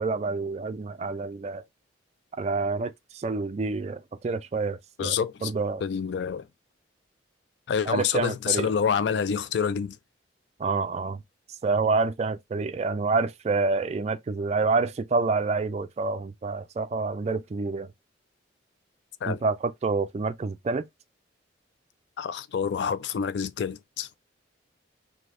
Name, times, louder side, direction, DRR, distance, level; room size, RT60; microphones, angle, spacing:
voice 1, 0.0-1.6 2.4-5.8 7.9-8.7 10.6-11.2 11.6-17.9 19.3-20.9, right 4 dB, 35° right, 0.3 m, -28 dB
voice 2, 5.0-5.5 5.8-6.5 7.7-10.0 19.2-19.4 22.2-24.1, left 7 dB, 60° left, 0.3 m, -27 dB
3.2 x 2.7 x 2.5 m
head